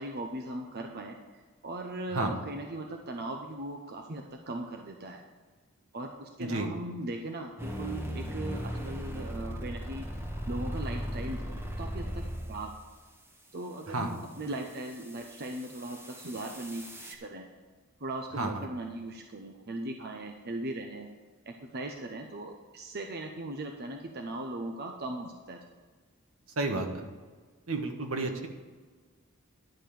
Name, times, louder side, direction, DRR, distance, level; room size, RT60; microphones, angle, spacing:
voice 1, 0.0-5.2 5.9-10.1 10.5-12.7 13.5-17.5 18.0-21.1 21.5-25.6, right 1 dB, 50° right, 3 dB, 0.8 m, -39 dB
sound 1, 7.6-12.8 14.5-17.1, equal, 10° right, 1.2 m, -38 dB
voice 2, 18.4-18.7 26.6-27.0 27.7-28.5, right 2 dB, 75° right, 4 dB, 1.4 m, -31 dB
10.5 x 5.2 x 7.5 m, 1.4 s
head